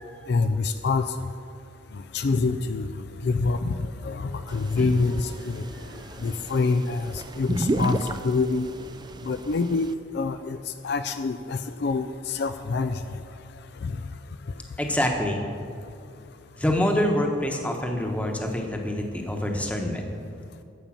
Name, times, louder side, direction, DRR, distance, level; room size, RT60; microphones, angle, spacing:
voice 1, 0.3-1.0 2.1-2.9 3.2-5.7 6.2-8.0 8.2-8.7 9.3-10.6 10.8-12.9 13.8-13.9, left 4 dB, 55° left, 9 dB, 0.4 m, -26 dB
sound 1, 4.5-9.9, right 2 dB, 20° right, 0.4 m, -33 dB
voice 2, 14.8-15.4 16.6-20.0, left 1 dB, 5° left, 2 dB, 1.0 m, -26 dB
14.0 x 5.4 x 7.4 m, 2.4 s
head